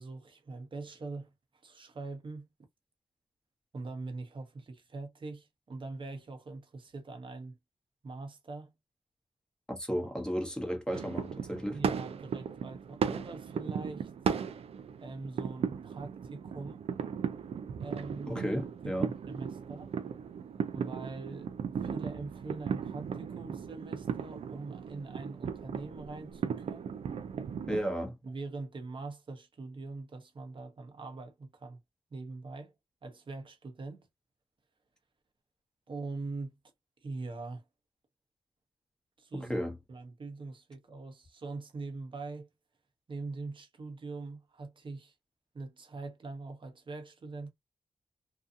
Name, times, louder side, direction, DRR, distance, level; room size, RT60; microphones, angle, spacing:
voice 1, 0.0-1.3 1.6-2.5 3.7-7.6 8.0-8.7 11.7-14.1 15.0-16.8 17.8-18.3 18.8-19.9 20.7-21.5 21.8-27.0 28.2-31.8 32.1-32.7 33.0-34.0 35.9-36.6 37.0-37.6 39.2-39.5 39.9-42.5 43.1-45.1 45.5-47.5, right 3 dB, 55° right, 1.0 m, -43 dB
voice 2, 9.7-11.8 18.3-19.1 27.7-28.2 39.3-39.8, equal, 10° left, 1.1 m, -34 dB
sound 1, 10.9-27.8, right 7 dB, 80° right, 0.4 m, -36 dB
2.7 x 2.4 x 2.4 m
cardioid pair, 60°, 10 cm